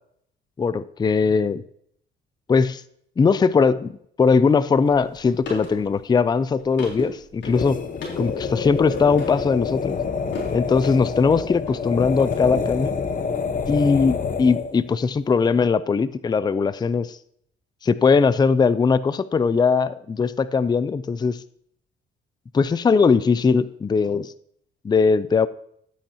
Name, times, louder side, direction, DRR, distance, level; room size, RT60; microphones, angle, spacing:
voice 1, 0.6-1.6 2.5-2.8 3.2-7.8 8.2-10.0 10.5-13.0 13.7-17.2 17.8-21.4 22.5-24.3 24.8-25.5, left 5 dB, 20° left, 15 dB, 0.4 m, -20 dB
sound 1, 4.8-11.9 12.2-13.7, left 2 dB, 65° left, 3.8 m, -37 dB
sound 2, 7.4-14.8, left 5 dB, 45° left, 1.1 m, -27 dB
13.0 x 8.8 x 2.8 m, 0.68 s
cardioid pair, 90°, 20 cm